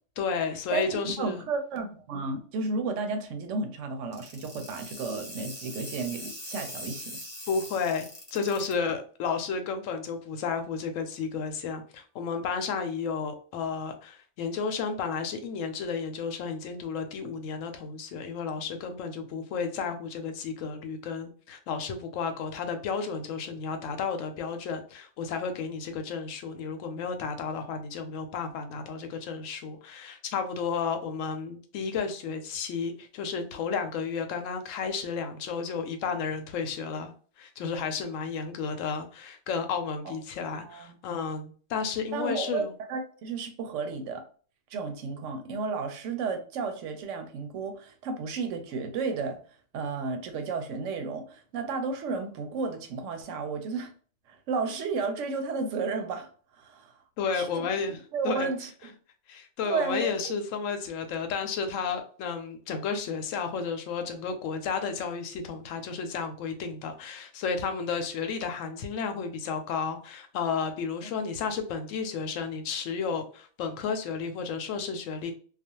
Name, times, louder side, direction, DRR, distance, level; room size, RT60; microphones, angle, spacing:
voice 1, 0.2-1.4 7.5-37.1 37.4-42.7 57.2-58.5 59.3-75.3, left 5 dB, 85° left, 0.9 m, -32 dB
voice 2, 0.7-7.2 40.0-40.2 40.6-40.9 42.1-44.3 44.7-49.4 49.7-53.9 54.3-57.0 57.3-57.7 58.1-58.9 59.6-60.4 71.0-71.1, right 4 dB, 75° right, 0.9 m, -33 dB
sound 1, 4.1-8.7, left 1 dB, 10° left, 0.9 m, -42 dB
2.4 x 2.2 x 2.8 m
omnidirectional pair, 1.3 m